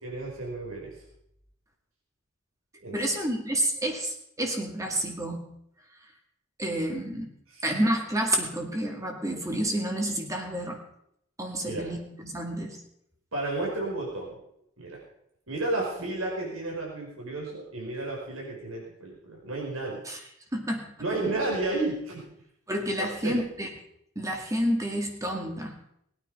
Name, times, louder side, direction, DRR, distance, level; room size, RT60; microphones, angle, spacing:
voice 1, 0.0-0.9 2.8-2.9 7.5-7.6 11.6-11.9 13.3-14.4 14.8-15.0 15.5-20.0 21.0-22.2 23.0-23.4, right 2 dB, 85° right, -2 dB, 5.0 m, -32 dB
voice 2, 2.9-5.5 6.6-7.3 7.6-10.8 11.4-12.8 20.1-20.2 20.5-20.9 22.7-23.7 24.2-25.8, right 1 dB, 15° right, 2 dB, 2.1 m, -29 dB
20.0 x 9.5 x 5.4 m, 0.73 s
head